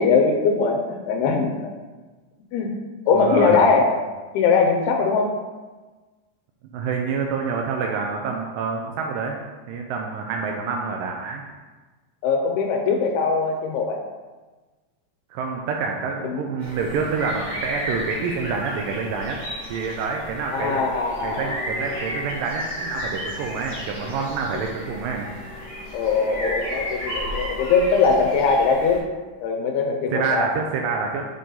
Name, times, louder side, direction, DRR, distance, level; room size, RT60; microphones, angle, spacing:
voice 1, 0.0-1.5 2.5-2.7 3.1-4.1 4.3-5.3 12.2-14.0 16.2-16.4 20.5-21.6 25.9-29.0 29.4-30.5, left 4 dB, 90° left, 1 dB, 2.6 m, -21 dB
voice 2, 3.2-3.6 6.7-9.4 9.7-11.4 15.3-19.4 19.7-20.8 21.2-25.3 30.1-31.2, right 5 dB, 80° right, 1 dB, 2.0 m, -27 dB
sound 1, 16.6-29.0, equal, 25° right, 0.9 m, -33 dB
7.5 x 4.1 x 3.8 m, 1.3 s
omnidirectional pair, 4.4 m